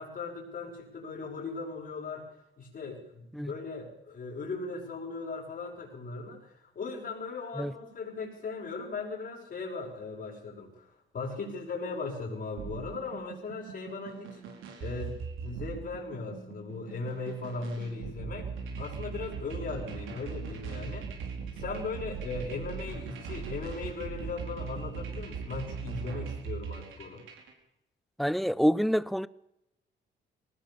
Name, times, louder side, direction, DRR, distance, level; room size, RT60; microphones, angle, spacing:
voice 1, 0.0-2.3 2.6-14.4 14.8-18.5 18.8-21.1 21.5-27.2, left 4 dB, 50° left, 6.1 m, -38 dB
sound 1, 12.6-27.5, right 5 dB, 85° right, 5.0 m, -40 dB
voice 2, 28.2-29.3, equal, ahead, 0.8 m, -27 dB
20.0 x 18.5 x 7.1 m
cardioid pair, 90°, 20 cm